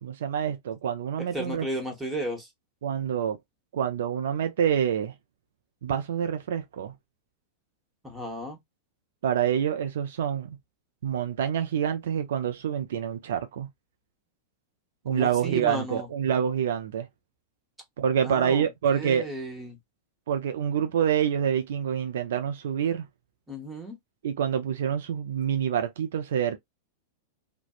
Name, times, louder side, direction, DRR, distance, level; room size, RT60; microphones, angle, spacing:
voice 1, 0.0-1.7 2.8-3.4 3.7-5.1 5.8-6.9 9.2-10.6 11.0-13.7 15.0-17.1 18.0-19.3 20.3-23.1 24.2-26.6, right 8 dB, 70° right, 0.4 m, -27 dB
voice 2, 1.3-2.5 8.0-8.6 15.1-16.1 18.2-18.7 19.0-19.8 23.5-24.0, equal, 10° right, 1.1 m, -34 dB
2.5 x 2.1 x 2.3 m
hypercardioid pair, 100°, 0 cm